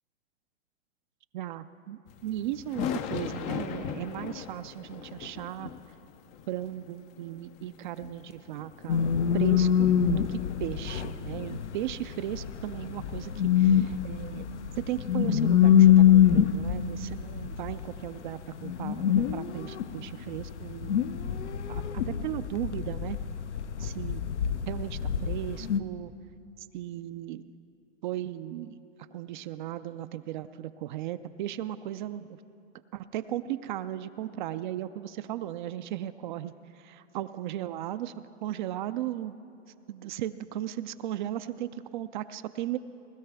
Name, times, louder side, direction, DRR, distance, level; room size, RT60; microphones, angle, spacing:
voice 1, 1.3-5.7 6.5-9.0 9.3-14.5 14.8-20.9 21.7-23.2 23.8-24.2 24.7-26.1 26.6-27.4 28.0-28.8 29.1-32.4 32.9-39.4 39.9-42.8, right 13 dB, 45° right, 12 dB, 0.4 m, -36 dB
sound 1, 2.1-20.7 21.0-21.1 21.7-21.8, left 9 dB, 20° left, 0.4 m, -41 dB
sound 2, 8.9-25.8, left 9 dB, 85° left, 0.7 m, -25 dB
20.0 x 12.5 x 3.4 m, 2.6 s
hypercardioid pair, 115°, 34 cm